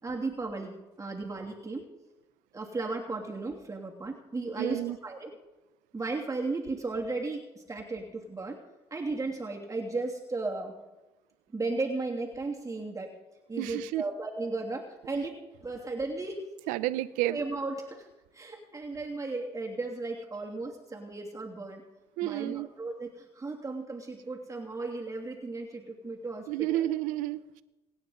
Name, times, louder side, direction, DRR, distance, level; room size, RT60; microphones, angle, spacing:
voice 1, 0.0-1.9 2.5-5.3 5.9-8.6 8.9-10.7 11.5-13.1 13.5-16.5 17.3-18.1 18.3-21.8 22.2-26.8, right 3 dB, 25° right, 0 dB, 2.8 m, -35 dB
voice 2, 4.6-5.0 13.6-14.1 15.1-15.2 16.7-17.4 22.2-22.7 26.5-27.6, right 15 dB, 80° right, 15 dB, 0.8 m, -31 dB
27.5 x 9.7 x 4.0 m, 1.1 s
hypercardioid pair, 60°, 14 cm